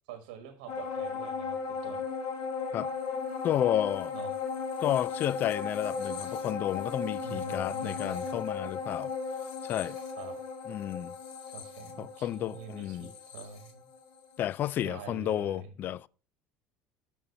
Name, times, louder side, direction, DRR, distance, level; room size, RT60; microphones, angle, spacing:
voice 1, 0.1-2.0 4.1-4.3 7.2-8.4 10.2-10.4 11.5-13.9 14.8-15.7, right 7 dB, 90° right, 1.4 m, -46 dB
sound 1, 0.7-14.4 14.8-14.9, left 5 dB, 85° left, 1.6 m, -36 dB
voice 2, 3.4-4.1 4.8-9.1 9.6-10.0 10.7-11.2 12.0-13.1 14.4-16.1, left 11 dB, 45° left, 0.3 m, -31 dB
6.9 x 6.3 x 5.3 m
supercardioid pair, 100°, 4 cm